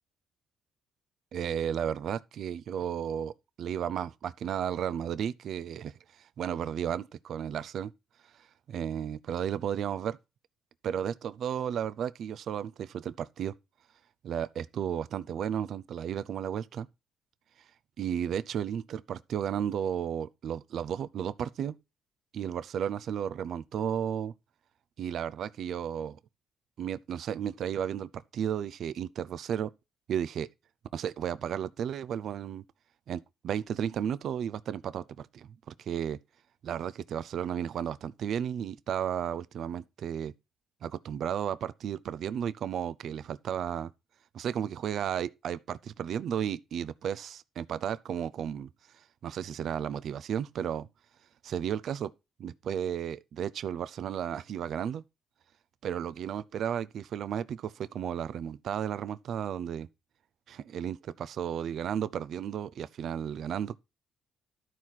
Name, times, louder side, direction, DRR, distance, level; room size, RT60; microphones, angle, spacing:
voice 1, 1.3-7.9 8.7-10.2 10.8-13.5 14.2-16.9 18.0-21.8 22.3-24.3 25.0-26.2 26.8-29.7 30.1-30.5 30.9-32.6 33.1-36.2 36.6-40.3 40.8-43.9 44.3-48.7 49.2-50.9 51.4-52.1 52.4-55.0 55.8-59.9 60.5-63.8, right 9 dB, 70° right, 0.6 m, -33 dB
12.5 x 4.7 x 5.7 m
cardioid pair, 90°, 0 cm